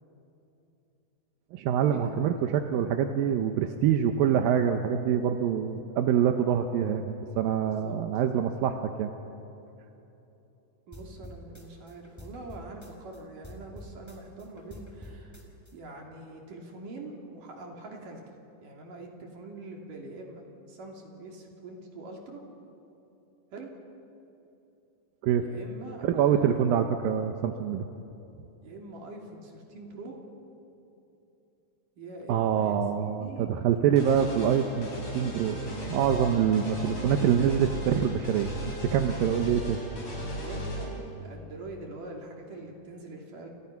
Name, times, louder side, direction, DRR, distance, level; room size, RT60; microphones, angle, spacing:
voice 1, 1.5-9.1 25.2-25.4 26.1-27.9 32.3-39.8, right 9 dB, 85° right, 6 dB, 2.8 m, -25 dB
sound 1, 10.9-13.2 13.4-15.7, equal, 5° left, 3.8 m, -46 dB
voice 2, 10.9-15.4 15.7-18.2 18.6-22.4 23.5-23.7 25.4-26.6 28.6-30.2 32.0-33.6 40.4-43.5, right 2 dB, 70° right, 1 dB, 4.4 m, -43 dB
sound 2, 34.0-40.8, equal, 40° left, 7.7 m, -36 dB
29.5 x 29.5 x 5.9 m, 2.9 s
omnidirectional pair, 4.0 m